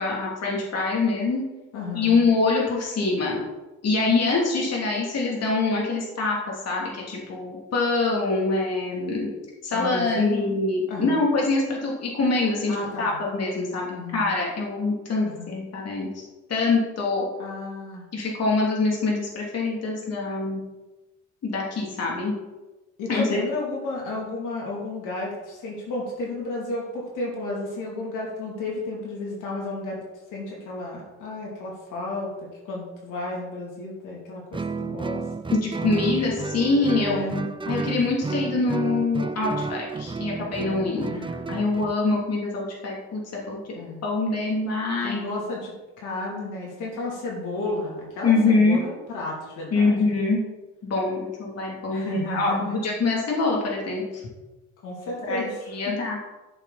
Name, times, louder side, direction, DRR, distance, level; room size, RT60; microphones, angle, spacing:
voice 1, 0.0-1.4 1.9-3.4 3.8-9.3 9.6-16.2 16.5-17.3 18.1-20.6 21.4-22.3 23.1-23.4 35.5-37.2 37.7-41.0 41.5-45.2 48.2-48.8 49.7-50.4 50.8-54.2 55.3-55.4 55.7-56.2, left 3 dB, 55° left, -2 dB, 3.1 m, -24 dB
voice 2, 1.7-2.2 9.7-10.4 10.9-11.2 12.7-13.2 13.9-14.3 15.2-15.5 17.4-18.1 23.0-30.0 30.3-35.3 37.0-37.5 40.9-41.3 43.7-44.0 45.0-50.1 51.9-52.8 54.8-55.6, left 2 dB, 85° left, -3 dB, 3.1 m, -32 dB
Guitar, 34.5-42.0, right 4 dB, 15° right, 0.6 m, -31 dB
13.5 x 6.9 x 4.3 m, 1.1 s
cardioid pair, 90°, 30 cm